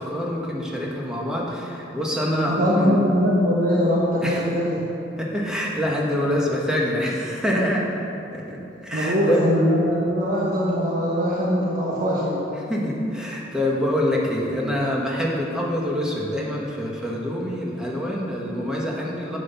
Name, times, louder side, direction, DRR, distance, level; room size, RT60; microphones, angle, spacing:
voice 1, 0.0-3.0 4.2-4.5 5.2-7.8 8.3-8.6 8.8-9.4 12.6-19.4, equal, 5° right, -4 dB, 1.5 m, -25 dB
voice 2, 2.5-4.8 8.9-12.5, equal, 50° right, -5 dB, 1.3 m, -21 dB
11.0 x 7.7 x 5.8 m, 2.9 s
head